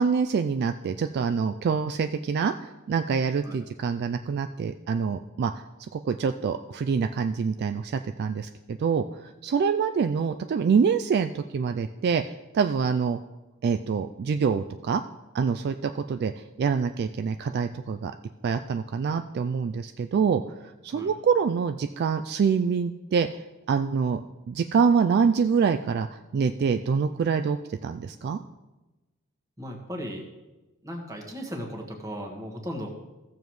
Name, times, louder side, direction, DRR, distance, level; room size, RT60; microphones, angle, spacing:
voice 1, 0.0-5.5 5.9-12.2 12.5-13.2 13.6-15.0 15.3-18.1 18.4-20.4 20.8-23.4 23.7-24.2 24.5-26.1 26.3-28.4, right 6 dB, 50° right, 8 dB, 0.3 m, -25 dB
voice 2, 29.6-30.3 30.8-33.0, equal, 15° right, 0 dB, 1.5 m, -36 dB
15.0 x 7.0 x 3.1 m, 1.1 s
head